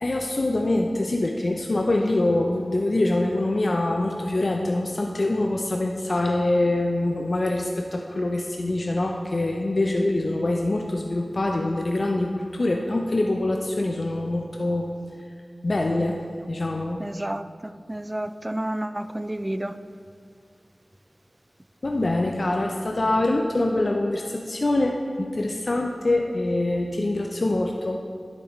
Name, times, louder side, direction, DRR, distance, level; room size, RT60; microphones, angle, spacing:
voice 1, 0.0-14.9 15.6-16.2 16.5-17.0 21.8-28.0, left 2 dB, 55° left, 1 dB, 0.5 m, -24 dB
voice 2, 17.0-19.8, right 1 dB, 20° right, 12 dB, 0.3 m, -31 dB
10.0 x 8.3 x 3.1 m, 2.3 s
wide cardioid pair, 45°, 0 cm